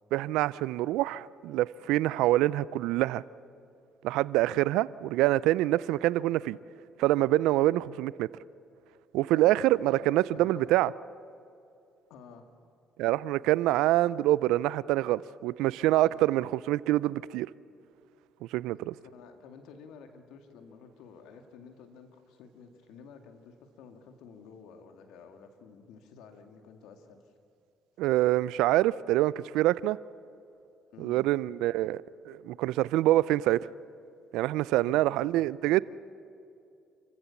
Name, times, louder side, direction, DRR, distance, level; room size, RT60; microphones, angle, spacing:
voice 1, 0.1-3.2 4.0-6.6 7.0-8.3 9.1-10.9 13.0-17.5 18.5-18.9 28.0-30.0 31.0-33.7 34.3-35.8, right 16 dB, 75° right, 0.4 m, -26 dB
voice 2, 9.3-9.8 10.3-10.7 12.1-12.5 16.1-16.2 18.7-27.3 30.9-31.3 34.7-35.5, left 6 dB, 75° left, 2.1 m, -51 dB
28.5 x 15.5 x 7.2 m
supercardioid pair, 65°, 0 cm